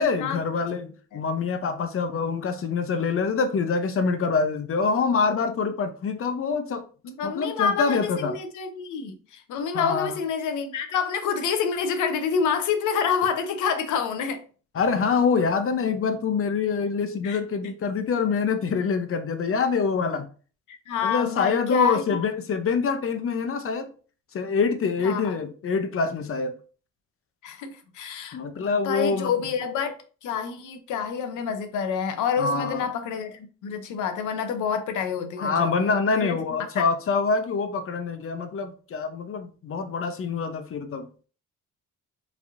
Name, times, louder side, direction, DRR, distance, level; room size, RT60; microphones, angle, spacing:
voice 1, 0.0-6.8 7.2-8.3 9.7-10.1 14.7-20.3 21.0-23.9 24.3-26.5 28.3-29.3 29.6-29.8 32.4-32.9 35.4-41.1, left 5 dB, 45° left, 0.7 m, -25 dB
voice 2, 7.0-14.4 17.2-17.7 20.7-22.2 25.0-25.4 27.4-29.9 30.2-36.4, left 6 dB, 85° left, 0.8 m, -28 dB
4.9 x 3.5 x 2.6 m
cardioid pair, 90°, 30 cm